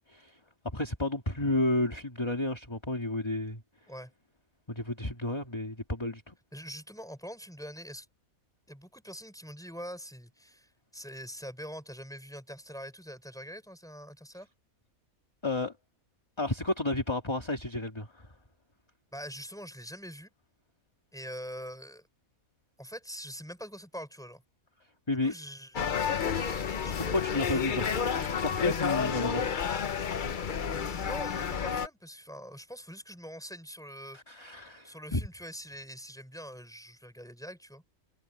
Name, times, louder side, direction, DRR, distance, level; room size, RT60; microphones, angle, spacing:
voice 1, 0.7-3.6 4.7-6.4 15.4-15.7 16.4-18.3 25.1-25.3 26.3-29.4 34.1-35.3, left 2 dB, 20° left, 2.2 m, -32 dB
voice 2, 6.5-8.1 8.7-14.5 19.1-20.3 21.1-22.1 22.8-24.4 25.2-25.9 26.8-27.0 27.5-27.6 30.6-34.2 34.8-37.8, equal, ahead, 5.3 m, -44 dB
sound 1, 25.7-31.9, left 7 dB, 45° left, 0.8 m, -30 dB
omnidirectional pair, 1.5 m